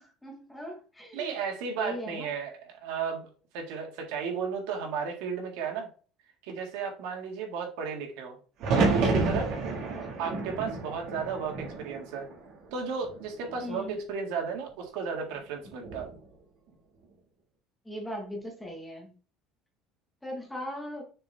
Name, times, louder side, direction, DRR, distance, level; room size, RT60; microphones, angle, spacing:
voice 1, 0.0-1.3 1.8-2.3 9.7-10.1 13.6-14.0 17.8-19.1 20.2-21.0, equal, 5° left, 1.3 m, -39 dB
voice 2, 1.1-5.9 6.4-8.4 8.7-9.5 10.2-12.3 12.7-16.2, right 6 dB, 80° right, 1.9 m, -34 dB
sound 1, 8.6-12.6 13.0-13.8 15.6-16.1, right 3 dB, 50° right, 1.9 m, -29 dB
6.6 x 4.2 x 3.5 m
cardioid pair, 175°, 0 cm